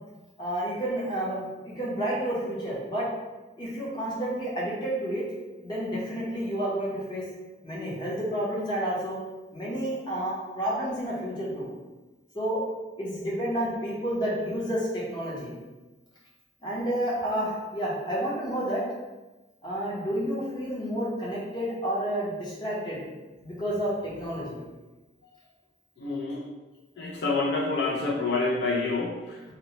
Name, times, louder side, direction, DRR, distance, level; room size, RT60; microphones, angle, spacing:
voice 1, 0.4-3.0 3.5-5.2 5.6-7.2 7.6-9.2 9.5-11.7 12.3-12.6 13.0-15.5 16.6-18.8 19.6-23.0 23.4-24.6, right 1 dB, 25° left, -6 dB, 0.7 m, -30 dB
voice 2, 26.0-26.5 27.0-29.4, left 3 dB, 65° left, -3 dB, 0.4 m, -28 dB
2.8 x 2.0 x 2.8 m, 1.2 s
head